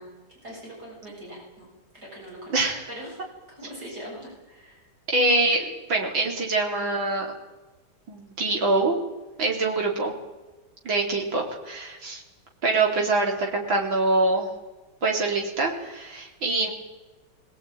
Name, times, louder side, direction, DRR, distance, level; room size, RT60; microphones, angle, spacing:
voice 1, 0.0-1.7 1.9-2.6 2.9-3.2 3.5-4.8 12.7-13.2, right 1 dB, 55° right, -3 dB, 8.5 m, -42 dB
voice 2, 2.5-2.9 5.1-7.3 8.1-9.0 9.4-10.2 10.8-12.2 12.6-14.5 15.0-16.7, right 2 dB, 90° right, 0 dB, 4.5 m, -24 dB
23.0 x 17.5 x 9.3 m, 1.2 s
omnidirectional pair, 2.1 m